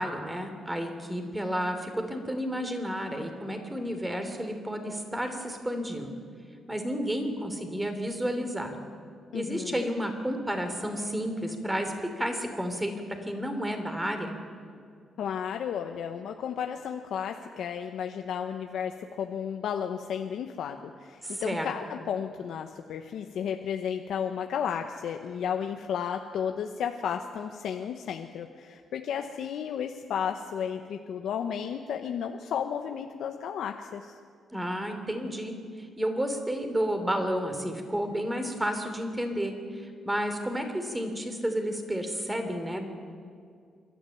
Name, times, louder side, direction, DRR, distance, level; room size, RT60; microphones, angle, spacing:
voice 1, 0.0-6.1 6.7-8.7 9.3-12.9 13.2-14.3 21.2-21.7 34.5-35.6 36.0-42.8, equal, 10° right, 6 dB, 3.1 m, -31 dB
voice 2, 9.3-9.9 15.2-34.1, left 8 dB, 80° left, 5 dB, 0.9 m, -33 dB
26.5 x 12.5 x 9.2 m, 2.2 s
cardioid pair, 95°, 0 cm